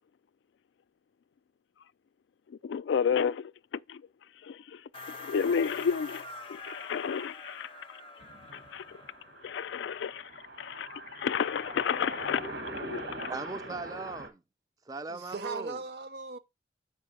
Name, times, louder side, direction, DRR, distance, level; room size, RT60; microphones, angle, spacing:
voice 1, 2.5-4.0 4.4-8.0 8.5-9.0 9.4-13.3, left 7 dB, 75° left, 0.3 m, -32 dB
sound 1, 4.9-9.5, left 2 dB, 30° left, 0.6 m, -45 dB
sound 2, 8.2-14.3, right 1 dB, 85° right, 1.8 m, -42 dB
voice 2, 13.3-14.4 14.9-15.8, right 3 dB, 20° right, 0.3 m, -39 dB
voice 3, 15.1-16.4, right 4 dB, 60° right, 0.6 m, -38 dB
7.5 x 4.7 x 4.1 m
head